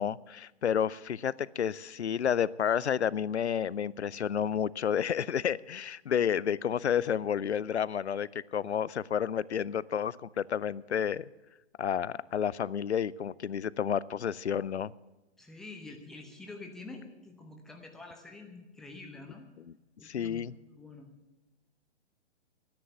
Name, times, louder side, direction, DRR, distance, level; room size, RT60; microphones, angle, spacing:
voice 1, 0.0-11.3 11.8-14.9 20.0-20.5, left 8 dB, 70° left, 22 dB, 0.5 m, -30 dB
voice 2, 15.4-19.5 20.0-21.1, left 3 dB, ahead, 3 dB, 0.8 m, -47 dB
10.5 x 10.0 x 9.0 m, 1.1 s
figure-of-eight pair, 120°, 35 cm